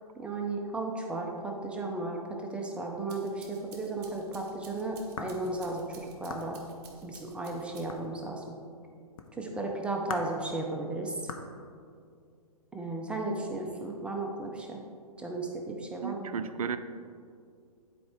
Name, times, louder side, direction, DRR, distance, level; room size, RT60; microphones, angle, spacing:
voice 1, 0.2-6.6 7.0-8.5 9.4-11.3 12.7-14.8 15.2-16.4, right 2 dB, 5° right, 0 dB, 0.5 m, -35 dB
sound 1, 2.9-8.2, right 4 dB, 30° right, 1.2 m, -54 dB
sound 2, 4.2-5.6 6.3-6.5 7.9-8.3 9.2-9.3 10.1-10.4 11.3-11.5, left 5 dB, 60° left, 0.8 m, -41 dB
voice 2, 16.0-16.8, right 7 dB, 65° right, 11 dB, 0.5 m, -33 dB
10.0 x 4.5 x 3.5 m, 2.2 s
figure-of-eight pair, 125°, 20 cm